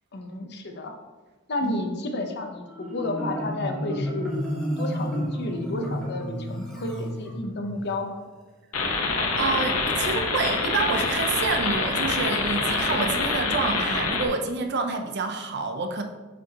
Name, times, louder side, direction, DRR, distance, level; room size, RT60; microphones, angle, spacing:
voice 1, 0.1-0.9 1.5-4.3 4.8-8.2, left 2 dB, 50° left, 3 dB, 0.8 m, -31 dB
Marimba xylophone, 2.7-7.8, equal, 5° left, 1.5 m, -31 dB
sound 1, 8.7-14.3, left 3 dB, 80° left, 1.0 m, -25 dB
voice 2, 9.4-16.0, right 3 dB, 50° right, 5 dB, 0.7 m, -28 dB
8.0 x 4.9 x 2.9 m, 1.2 s
head